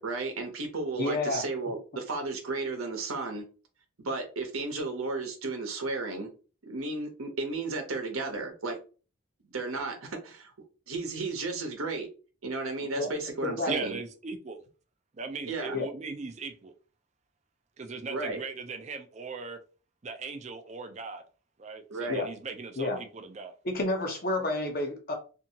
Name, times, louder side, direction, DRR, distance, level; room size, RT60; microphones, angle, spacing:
voice 1, 0.0-3.5 4.0-6.3 6.6-8.8 9.5-10.5 10.9-12.1 12.4-14.0 15.5-15.8 18.1-18.4 21.9-22.2, right 3 dB, 80° right, 0.8 m, -33 dB
voice 2, 1.0-1.4 13.0-13.1 13.4-13.7 15.7-15.9 22.1-22.3 22.8-23.0 23.6-25.1, left 2 dB, 45° left, 0.7 m, -29 dB
voice 3, 13.7-14.6 15.2-16.7 17.8-19.6 20.0-21.2 21.6-23.5, right 4 dB, 30° right, 0.4 m, -38 dB
2.7 x 2.6 x 2.7 m
head